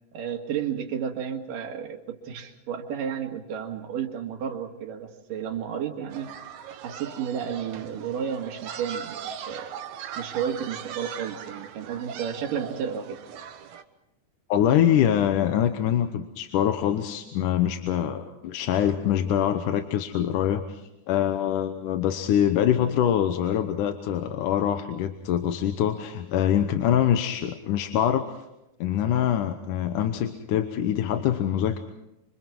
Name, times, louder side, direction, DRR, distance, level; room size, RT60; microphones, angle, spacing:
voice 1, 0.1-6.3 6.8-9.7 10.2-13.2, right 8 dB, 85° right, 4 dB, 3.4 m, -32 dB
sound 1, 6.1-13.8, right 8 dB, 70° right, 2.5 m, -39 dB
voice 2, 14.5-20.8 21.1-28.5 28.8-31.8, left 10 dB, 80° left, 7 dB, 2.5 m, -24 dB
26.5 x 25.5 x 4.6 m, 0.89 s
omnidirectional pair, 3.7 m